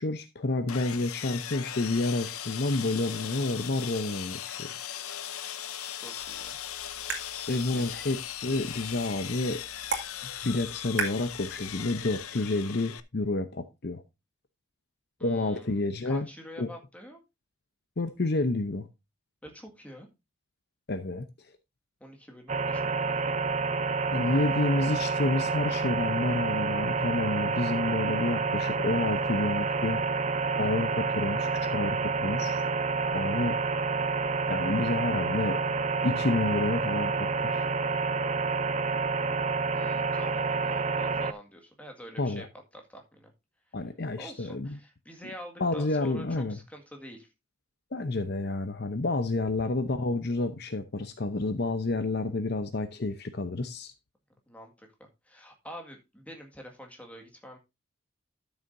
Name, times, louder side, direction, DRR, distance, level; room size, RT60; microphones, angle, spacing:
voice 1, 0.0-4.7 7.5-9.6 10.4-14.0 15.2-16.3 16.6-16.7 18.0-18.9 20.9-21.2 24.1-30.0 30.6-32.6 33.1-33.6 34.5-35.6 36.0-37.7 42.2-42.5 43.7-44.8 45.6-46.6 47.9-53.9, left 2 dB, 50° left, 0.7 m, -29 dB
Sawing, 0.7-13.0, left 10 dB, 85° left, 0.8 m, -38 dB
voice 2, 6.0-6.6 7.5-7.9 15.2-17.2 19.4-20.1 22.0-23.4 39.7-42.5 42.7-43.3 44.2-47.3 54.5-57.6, equal, 5° left, 1.9 m, -46 dB
sound 1, 6.2-12.2, right 4 dB, 55° right, 2.2 m, -39 dB
sound 2, 22.5-41.3, right 4 dB, 30° right, 0.5 m, -28 dB
12.5 x 7.1 x 2.6 m
head